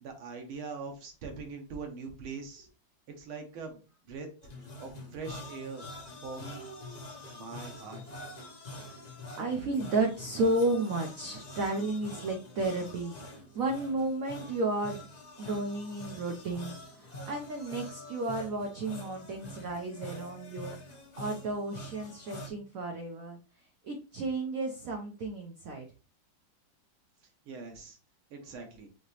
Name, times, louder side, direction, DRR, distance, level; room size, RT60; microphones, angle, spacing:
voice 1, 0.0-2.7 3.2-4.3 4.8-5.8 6.2-6.7 7.3-8.0 27.5-28.0 28.3-28.9, right 4 dB, 85° right, 3 dB, 1.9 m, -42 dB
sound 1, 4.4-22.5, left 1 dB, 75° left, 0.3 m, -46 dB
voice 2, 9.4-15.1 15.4-20.7 21.2-23.4 23.8-25.9, right 2 dB, 65° right, 2 dB, 0.8 m, -33 dB
5.8 x 2.9 x 3.0 m, 0.35 s
omnidirectional pair, 2.2 m